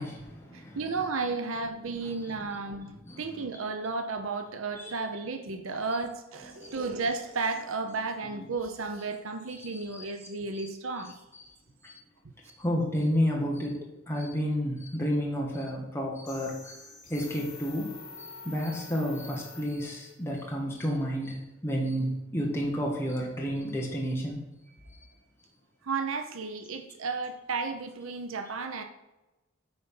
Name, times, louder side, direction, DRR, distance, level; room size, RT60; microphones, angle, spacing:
voice 1, 0.0-0.8 2.0-2.2 3.0-3.2 4.8-5.0 6.6-6.7 9.6-10.1 11.8-11.9 12.6-16.8 17.1-17.9 18.2-24.4, equal, 10° left, -2 dB, 1.2 m, -31 dB
voice 2, 0.5-11.2 25.8-28.8, right 4 dB, 75° right, 6 dB, 0.7 m, -33 dB
sound 1, 16.3-20.1, left 4 dB, 75° left, 2.9 m, -47 dB
8.7 x 4.2 x 5.7 m, 1.0 s
head